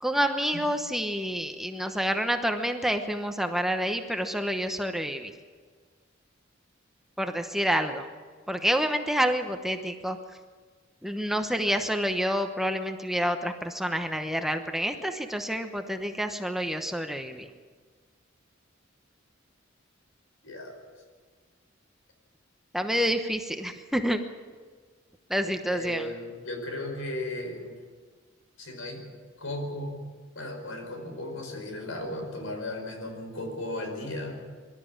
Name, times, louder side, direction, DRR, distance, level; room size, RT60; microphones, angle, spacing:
voice 1, 0.0-5.3 7.2-8.1 8.5-10.2 11.0-17.5 22.7-24.2 25.3-26.1, equal, ahead, 6 dB, 1.0 m, -28 dB
voice 2, 20.4-20.8 25.7-27.8 28.6-29.1 29.4-30.1 30.3-34.4, left 1 dB, 85° left, 4 dB, 5.2 m, -36 dB
23.5 x 13.0 x 8.8 m, 1.5 s
head